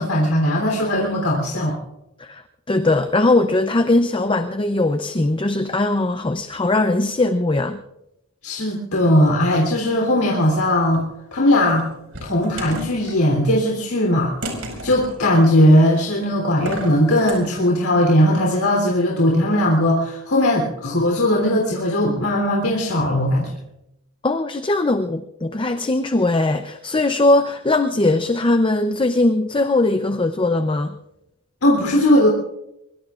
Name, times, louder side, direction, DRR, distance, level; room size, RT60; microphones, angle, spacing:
voice 1, 0.0-1.8 8.4-11.0 11.3-11.8 12.2-14.4 14.8-23.5 31.6-32.3, left 1 dB, 90° left, -2 dB, 3.4 m, -18 dB
voice 2, 2.7-7.8 24.2-30.9, left 2 dB, 25° left, 8 dB, 0.6 m, -20 dB
sound 1, 10.4-11.0 11.7-13.2 14.4-15.2 16.5-17.4, right 1 dB, 70° right, 5.0 m, -32 dB
23.5 x 23.5 x 2.5 m, 0.87 s
head